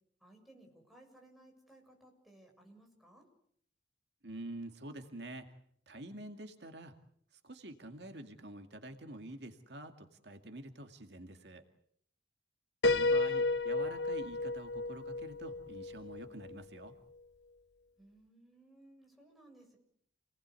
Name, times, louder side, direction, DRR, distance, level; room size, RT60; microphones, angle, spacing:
voice 1, 0.2-3.3 18.0-19.8, right 1 dB, ahead, 0 dB, 7.3 m, -60 dB
voice 2, 4.2-5.5 5.9-6.9 7.4-11.6 12.9-16.9, right 1 dB, 70° right, 6 dB, 2.2 m, -47 dB
Piano, 12.8-16.6, left 2 dB, 75° left, 1.0 m, -32 dB
29.0 x 19.5 x 8.3 m, 0.68 s
head